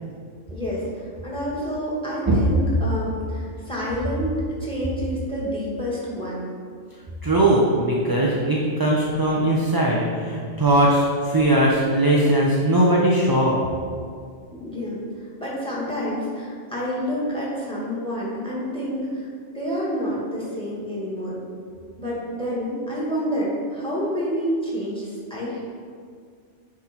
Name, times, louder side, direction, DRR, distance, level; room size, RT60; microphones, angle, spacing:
voice 1, 0.5-4.3 4.6-6.5 14.5-21.4 22.0-25.6, equal, 5° left, -6 dB, 1.9 m, -28 dB
voice 2, 7.2-13.6, right 1 dB, 25° right, -4 dB, 0.5 m, -19 dB
9.7 x 3.7 x 4.4 m, 2.1 s
omnidirectional pair, 1.2 m